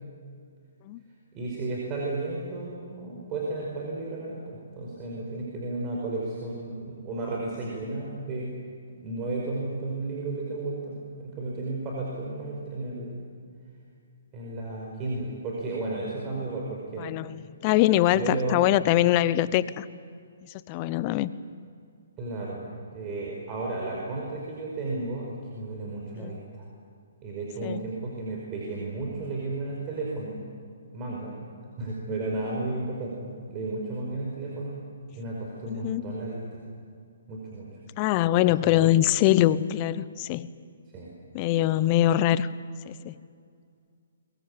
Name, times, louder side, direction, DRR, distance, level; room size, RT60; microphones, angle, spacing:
voice 1, 1.3-8.5 8.9-13.2 14.3-17.1 18.1-18.6 22.2-26.6 27.2-30.4 30.9-31.5 31.8-34.8 35.1-36.6 37.3-37.7 38.6-38.9 40.9-41.1, right 2 dB, 25° right, -3 dB, 5.1 m, -33 dB
voice 2, 17.0-19.9 20.4-21.3 26.2-26.4 27.6-27.8 35.7-36.2 38.0-40.5 41.3-42.5 42.9-43.2, left 14 dB, 30° left, 16 dB, 0.8 m, -23 dB
22.5 x 22.0 x 8.6 m, 2.3 s
hypercardioid pair, 145°, 0 cm